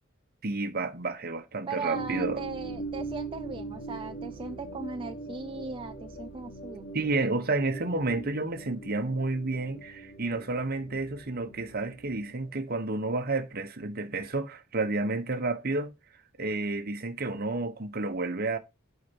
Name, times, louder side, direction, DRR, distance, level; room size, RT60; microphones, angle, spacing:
voice 1, 0.4-2.4 6.9-15.9 16.4-18.6, right 2 dB, 45° right, 1.2 m, -30 dB
voice 2, 1.7-6.9, right 4 dB, 25° right, 0.5 m, -38 dB
sound 1, 1.9-12.5, right 3 dB, 50° left, 3.2 m, -41 dB
8.4 x 5.0 x 6.1 m
head